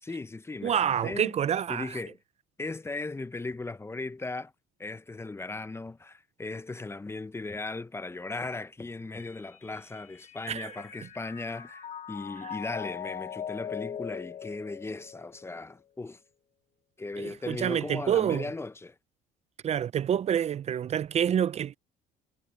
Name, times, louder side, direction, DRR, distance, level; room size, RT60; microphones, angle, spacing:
voice 1, 0.0-1.4 1.7-2.2 2.6-4.5 4.8-16.2 17.0-18.9, left 3 dB, 15° left, 0.9 m, -37 dB
voice 2, 0.6-2.0 10.5-10.7 12.4-12.6 17.2-18.5 19.6-21.7, right 9 dB, 40° right, 0.5 m, -27 dB
Mallet percussion, 9.2-15.7, left 8 dB, 45° left, 2.0 m, -41 dB
supercardioid pair, 90°, 16 cm